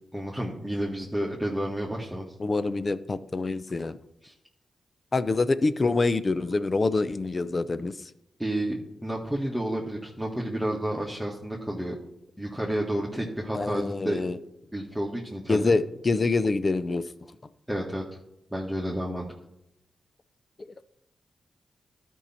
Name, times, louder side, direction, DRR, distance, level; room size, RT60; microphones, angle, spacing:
voice 1, 0.1-2.3 4.2-4.3 8.4-12.0 12.4-14.2 14.7-15.7 17.7-18.0 18.5-19.3, right 1 dB, 5° right, -4 dB, 1.8 m, -30 dB
voice 2, 2.4-4.0 5.1-7.9 13.5-14.4 15.5-17.0 20.6-20.7, left 3 dB, 40° left, 14 dB, 0.6 m, -26 dB
12.5 x 5.5 x 4.4 m, 0.83 s
cardioid pair, 60°, 0 cm